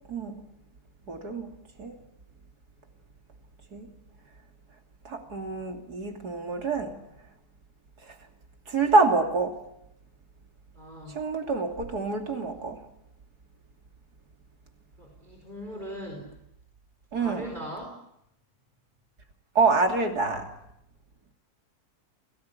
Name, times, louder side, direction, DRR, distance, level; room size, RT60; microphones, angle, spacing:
voice 1, 0.1-0.4 1.1-1.5 1.8-2.0 3.7-3.9 5.1-7.0 8.7-9.6 11.2-12.8 17.1-17.4 19.6-20.5, right 3 dB, 75° right, 4 dB, 3.4 m, -26 dB
voice 2, 10.8-11.2 15.0-16.3 17.2-18.0, equal, 30° right, 2 dB, 4.7 m, -39 dB
28.5 x 19.0 x 9.9 m, 0.81 s
omnidirectional pair, 1.7 m